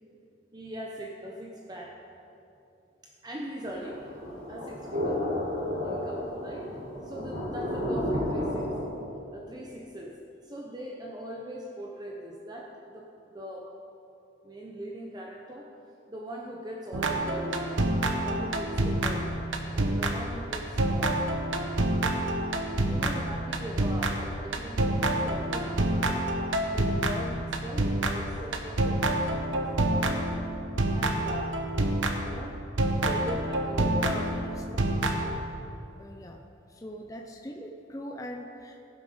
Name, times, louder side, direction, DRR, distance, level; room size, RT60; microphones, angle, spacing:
voice 1, 0.5-2.0 3.0-4.0 4.5-5.2 5.8-9.0 9.3-10.1 10.4-13.1 13.3-13.7 14.4-15.7 16.1-19.3 19.7-21.3 22.8-26.3 26.7-30.4 30.9-31.6 32.2-32.6 33.0-34.6, right 1 dB, 20° right, -1 dB, 0.8 m, -41 dB
sound 1, 3.6-8.8, left 1 dB, 55° right, 3.4 m, -32 dB
sound 2, 16.9-32.4 32.8-35.2, right 1 dB, 80° right, 1.0 m, -28 dB
voice 2, 34.0-35.3 35.9-36.4 36.7-38.9, equal, 15° left, 2 dB, 0.6 m, -42 dB
17.0 x 7.5 x 5.0 m, 2.8 s
head